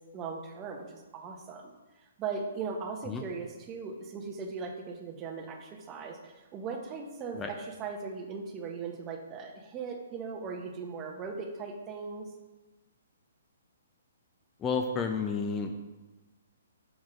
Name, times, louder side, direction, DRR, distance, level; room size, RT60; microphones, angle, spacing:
voice 1, 0.1-1.7 2.0-12.3, right 5 dB, 25° right, 3 dB, 0.7 m, -39 dB
voice 2, 14.6-15.9, left 5 dB, 20° left, 4 dB, 0.4 m, -31 dB
7.1 x 6.0 x 2.4 m, 1.2 s
hypercardioid pair, 135°, 0 cm